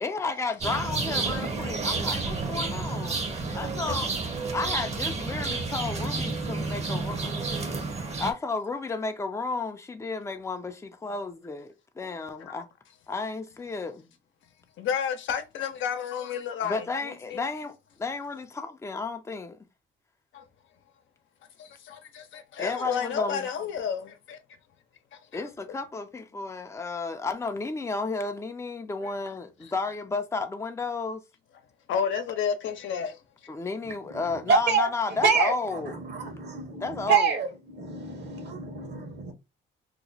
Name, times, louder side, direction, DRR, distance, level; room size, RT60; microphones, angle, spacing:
voice 1, 0.0-3.2 3.5-4.1 4.5-7.7 8.2-12.7 13.1-14.1 16.6-19.6 22.6-23.5 25.3-31.2 33.5-36.0 36.8-37.4, left 4 dB, 15° left, 0.5 m, -32 dB
sound 1, 0.6-8.3, right 3 dB, 35° right, 0.9 m, -30 dB
voice 2, 14.8-17.5 21.6-24.4 29.0-29.1 31.9-33.1, left 7 dB, 75° left, 0.8 m, -31 dB
voice 3, 34.5-34.9 35.2-35.5 35.9-39.3, right 5 dB, 60° right, 1.3 m, -26 dB
2.9 x 2.1 x 3.9 m
cardioid pair, 90°, 20 cm